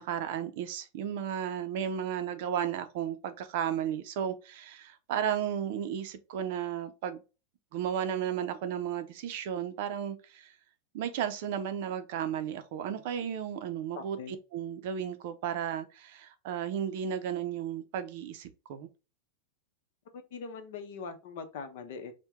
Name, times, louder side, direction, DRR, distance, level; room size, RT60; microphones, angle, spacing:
voice 1, 0.0-7.2 7.7-10.5 10.9-18.9, right 9 dB, 50° right, 0.5 m, -34 dB
voice 2, 13.9-14.3 20.1-22.1, left 5 dB, 55° left, 0.8 m, -42 dB
4.5 x 2.2 x 3.5 m
supercardioid pair, 175°, 0 cm